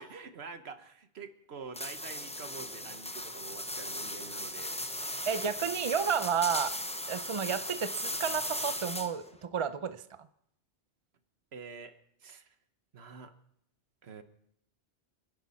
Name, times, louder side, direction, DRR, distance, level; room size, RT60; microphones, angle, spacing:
voice 1, 0.0-4.8 11.5-12.6 12.9-13.3 14.0-14.2, right 5 dB, 65° right, 9 dB, 1.3 m, -47 dB
sound 1, 1.7-9.3, left 1 dB, 5° left, 0.7 m, -37 dB
voice 2, 5.3-6.8 7.1-10.0, right 7 dB, 35° right, 12 dB, 0.5 m, -31 dB
29.5 x 10.5 x 4.2 m, 0.74 s
omnidirectional pair, 1.2 m